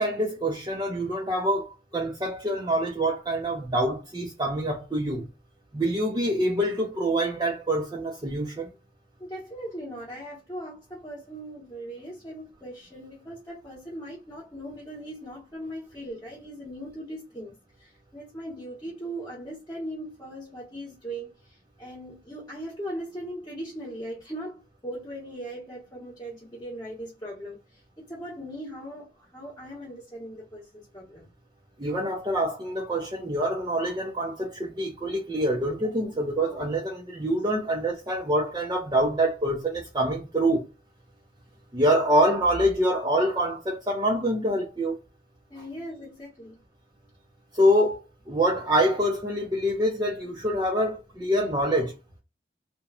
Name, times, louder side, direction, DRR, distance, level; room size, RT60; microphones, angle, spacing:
voice 1, 0.0-5.3 5.7-8.7 31.8-40.6 41.7-45.0 47.5-52.0, right 1 dB, 25° right, 0.5 m, -25 dB
voice 2, 9.2-31.3 35.8-35.9 36.5-36.7 37.2-37.4 45.5-46.6, right 1 dB, 20° left, 0.9 m, -39 dB
2.9 x 2.1 x 2.3 m
head